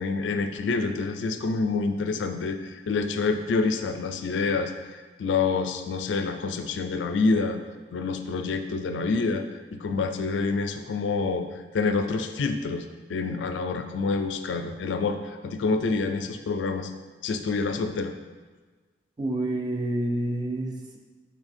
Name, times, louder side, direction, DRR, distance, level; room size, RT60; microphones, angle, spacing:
voice 1, 0.0-7.6 7.9-9.4 9.7-12.8 13.1-16.9 17.2-18.1, left 4 dB, 85° left, 7 dB, 0.4 m, -27 dB
voice 2, 19.2-21.0, right 1 dB, 25° right, 2 dB, 0.4 m, -28 dB
3.4 x 3.2 x 4.1 m, 1.4 s
head